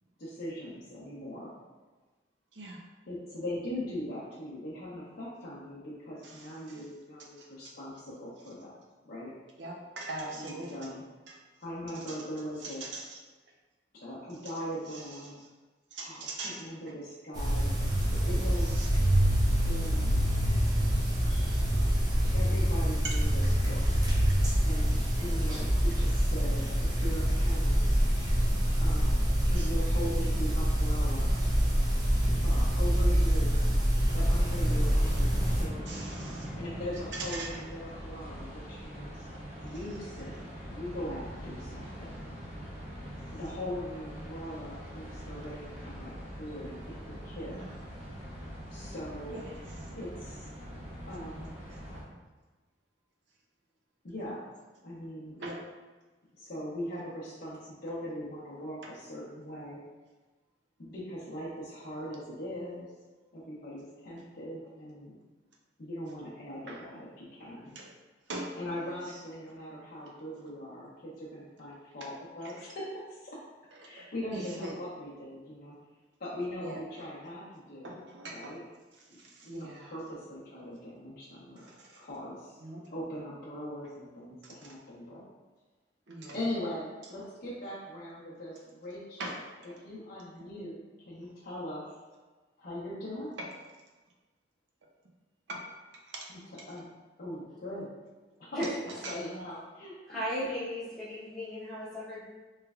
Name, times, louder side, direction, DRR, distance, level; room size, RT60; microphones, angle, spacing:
voice 1, 0.2-1.5 3.1-8.7 9.1-9.3 10.4-11.0 11.6-12.8 13.9-15.4 16.0-17.7 18.1-18.9 19.6-20.1 21.2-21.8 22.3-23.9 24.6-28.0 28.8-29.3 29.5-31.3 32.4-33.6 34.1-36.0 36.5-39.3 39.6-42.2 43.3-47.6 48.7-49.4 49.9-50.5 51.1-51.5 54.0-54.5 54.8-55.4 56.4-59.8 60.8-62.9 63.3-65.2 65.8-67.7 68.5-72.9 73.2-73.4 73.8-75.7 76.2-78.0 78.3-78.6 79.1-81.7 82.0-82.6 82.9-85.2 86.3-89.4 89.8-92.0 92.6-93.3 96.3-96.9 97.2-97.9 98.4-100.5, left 1 dB, 55° left, -9 dB, 0.6 m, -40 dB
voice 2, 9.6-10.9 11.3-11.4 12.6-13.2 15.9-16.6 18.8-18.9 23.0-23.2 29.6-29.7 35.9-36.5 37.1-37.6 47.5-47.6 49.3-49.4 55.4-55.6 66.7-66.8 67.8-67.9 68.3-68.8 74.0-74.1 74.3-74.7 76.6-76.8 77.8-78.5 79.4-79.9 81.6-81.9 82.6-82.8 86.1-86.4 89.2-89.3 95.5-95.6 96.1-96.3 99.0-99.1, right 2 dB, 85° right, 0 dB, 0.6 m, -40 dB
sound 1, 17.3-35.6, equal, 20° right, 0.6 m, -26 dB
sound 2, 34.1-52.0, equal, 40° right, 1.2 m, -43 dB
voice 3, 100.1-102.2, equal, 5° left, -11 dB, 0.9 m, -35 dB
3.1 x 3.1 x 2.4 m, 1.3 s
head